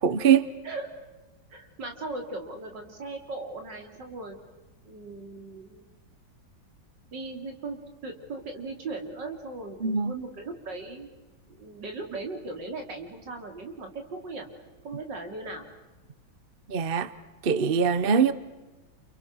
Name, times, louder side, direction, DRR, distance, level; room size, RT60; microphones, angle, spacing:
voice 1, 0.0-0.5 9.8-10.1 16.7-17.1 17.4-18.3, right 7 dB, 40° right, 0.8 m, -22 dB
voice 2, 1.5-4.4 4.8-5.9 7.1-11.1 11.5-14.5 14.8-15.7, right 3 dB, 65° right, 3.9 m, -38 dB
29.5 x 29.0 x 6.2 m
omnidirectional pair, 2.0 m